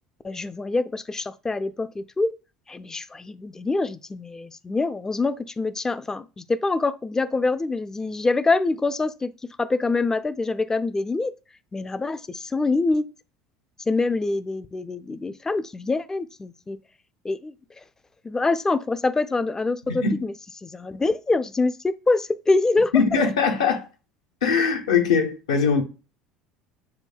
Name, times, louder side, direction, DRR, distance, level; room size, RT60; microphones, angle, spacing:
voice 1, 0.2-2.4 2.7-9.3 9.6-11.3 11.7-13.1 13.9-16.8 17.2-17.8 18.2-20.3 20.6-22.9, left 3 dB, 15° left, 0.3 m, -25 dB
voice 2, 22.9-23.9 24.4-25.8, left 5 dB, 75° left, 0.7 m, -21 dB
6.3 x 2.6 x 2.2 m
figure-of-eight pair, 65°, 3 cm